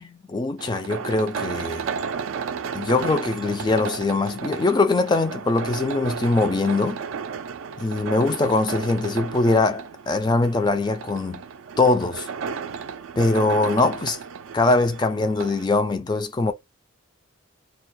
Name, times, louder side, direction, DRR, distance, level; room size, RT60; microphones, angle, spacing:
voice 1, 0.0-1.8 2.7-7.0 7.8-11.4 11.8-12.3 13.2-14.2 14.5-16.5, left 3 dB, 20° left, 0.3 m, -22 dB
sound 1, 0.6-15.7, right 6 dB, 65° right, 0.3 m, -33 dB
2.2 x 2.1 x 2.6 m
head